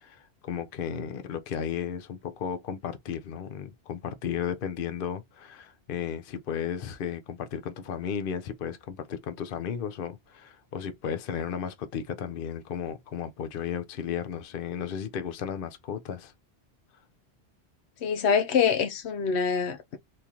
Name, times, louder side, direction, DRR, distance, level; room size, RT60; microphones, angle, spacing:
voice 1, 0.0-16.3, left 8 dB, 60° left, 0.8 m, -34 dB
voice 2, 18.0-20.0, left 6 dB, 85° left, 1.0 m, -25 dB
3.6 x 2.9 x 2.9 m
omnidirectional pair, 1.1 m